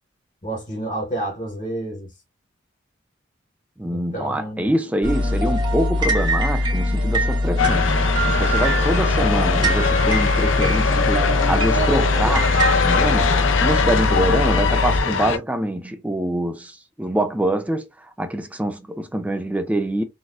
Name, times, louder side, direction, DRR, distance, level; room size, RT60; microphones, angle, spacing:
voice 1, 0.4-2.1 3.9-4.7, right 1 dB, 40° left, 1.1 m, -29 dB
voice 2, 3.8-8.0 8.3-20.0, right 1 dB, 5° right, 0.3 m, -25 dB
sound 1, 5.0-15.0, left 1 dB, 25° right, 0.8 m, -21 dB
sound 2, 7.6-15.4, left 5 dB, 85° left, 0.5 m, -22 dB
3.9 x 2.3 x 2.4 m
head